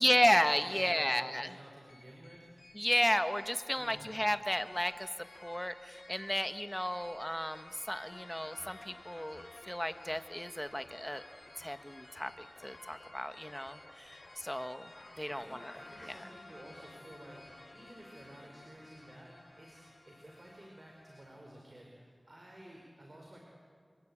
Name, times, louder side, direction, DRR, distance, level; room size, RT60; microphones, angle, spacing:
voice 1, 0.0-1.5 2.7-5.1 5.3-11.2 11.6-15.7 16.1-16.2, equal, 10° left, 9 dB, 1.3 m, -33 dB
voice 2, 0.6-2.5 3.8-4.1 14.1-14.3 15.2-23.4, right 1 dB, 50° right, -1 dB, 4.7 m, -53 dB
sound 1, 1.9-21.3, left 2 dB, 85° left, 6.7 m, -55 dB
sound 2, 7.6-16.1, left 2 dB, 55° left, 4.0 m, -62 dB
26.5 x 23.5 x 8.7 m, 2.1 s
wide cardioid pair, 45°, 0 cm